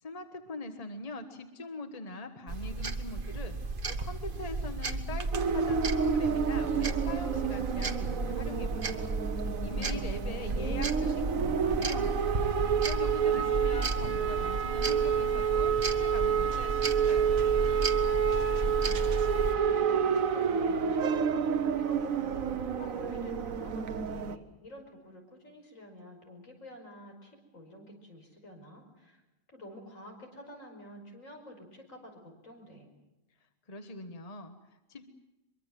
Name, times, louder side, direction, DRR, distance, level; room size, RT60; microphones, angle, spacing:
voice 1, 0.0-9.1 9.4-12.4 12.8-17.5 33.7-35.0, left 2 dB, 30° left, 7 dB, 1.5 m, -42 dB
sound 1, 2.5-19.5, right 3 dB, 40° right, 1.4 m, -34 dB
sound 2, 5.3-24.4, right 7 dB, 85° right, 1.5 m, -29 dB
voice 2, 18.6-19.4 19.6-29.2 29.5-32.9, equal, 75° left, 2 dB, 5.8 m, -50 dB
23.5 x 23.5 x 7.6 m, 0.99 s
omnidirectional pair, 1.4 m